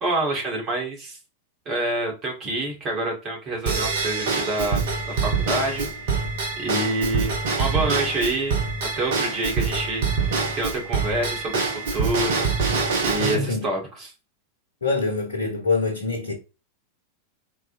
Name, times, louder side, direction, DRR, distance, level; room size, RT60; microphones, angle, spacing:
voice 1, 0.0-1.2 1.7-5.9 6.6-8.6 9.0-14.1, right 2 dB, 35° right, 2.2 m, -27 dB
Drum kit / Drum / Bell, 3.7-13.3, right 4 dB, 55° right, 1.1 m, -25 dB
voice 2, 13.2-13.6 14.8-16.3, left 3 dB, 70° left, 1.1 m, -24 dB
4.4 x 4.2 x 2.7 m
figure-of-eight pair, 90°, 0 cm